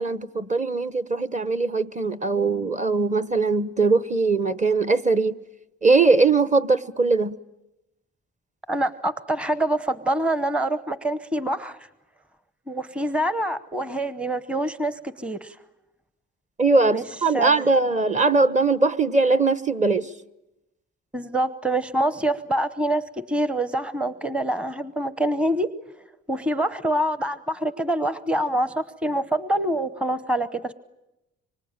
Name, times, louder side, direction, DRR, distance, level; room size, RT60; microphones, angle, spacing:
voice 1, 0.0-5.4 5.8-7.4 16.6-20.1, right 3 dB, 25° right, 1.1 m, -21 dB
voice 2, 8.7-11.8 12.7-15.6 16.9-17.0 17.3-17.7 21.1-25.7 26.3-30.7, right 1 dB, 5° right, 0.9 m, -25 dB
25.5 x 24.5 x 8.9 m
cardioid pair, 90°, 30 cm